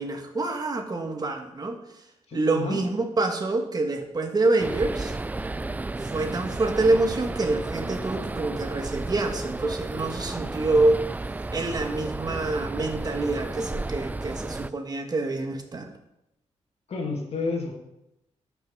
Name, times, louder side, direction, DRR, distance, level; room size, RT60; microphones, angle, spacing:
voice 1, 0.0-1.8 2.3-5.2 6.0-11.0 11.5-15.9, right 2 dB, 35° right, 4 dB, 1.5 m, -26 dB
voice 2, 2.3-2.8 16.9-17.7, left 4 dB, 60° left, 0 dB, 2.2 m, -30 dB
sound 1, 4.6-14.7, right 2 dB, 15° right, 0.3 m, -33 dB
12.5 x 6.0 x 5.5 m, 0.87 s
wide cardioid pair, 120°, 12 cm